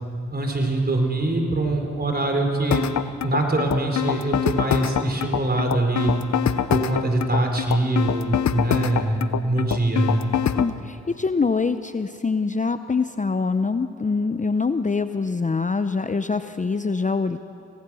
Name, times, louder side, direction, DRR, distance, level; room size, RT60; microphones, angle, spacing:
voice 1, 0.3-2.9 3.2-6.1 6.7-10.2, right 2 dB, 35° right, 3 dB, 4.4 m, -23 dB
sound 1, 2.7-10.7, left 10 dB, 70° left, 0.7 m, -24 dB
voice 2, 10.6-17.4, left 4 dB, 25° left, 10 dB, 0.7 m, -24 dB
26.5 x 18.0 x 6.3 m, 2.7 s
cardioid pair, 55°, 29 cm